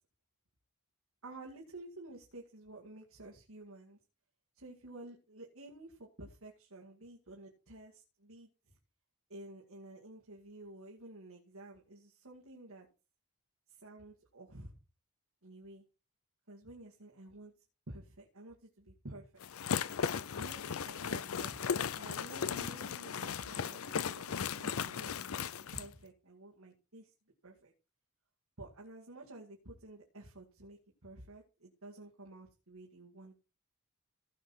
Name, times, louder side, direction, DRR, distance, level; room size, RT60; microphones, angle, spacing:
voice 1, 1.2-4.0 4.5-8.5 9.3-12.9 13.7-14.7 15.4-15.8 16.5-17.5 17.9-19.3 20.4-27.1 27.4-27.7 28.6-33.3, right 2 dB, 70° right, -2 dB, 2.3 m, -51 dB
sound 1, 19.4-25.9, left 7 dB, 70° left, 0.5 m, -36 dB
16.5 x 5.9 x 4.4 m, 0.32 s
head